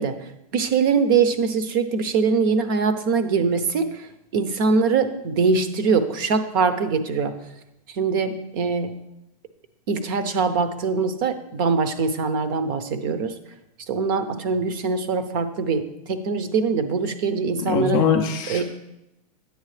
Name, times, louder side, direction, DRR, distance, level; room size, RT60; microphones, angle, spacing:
voice 1, 0.0-7.3 7.9-8.9 9.9-13.3 13.9-18.1 18.5-18.6, right 5 dB, 35° right, 10 dB, 0.6 m, -23 dB
voice 2, 17.7-18.6, left 6 dB, 20° left, 4 dB, 0.4 m, -22 dB
9.3 x 8.1 x 3.3 m, 0.87 s
supercardioid pair, 175°, 20 cm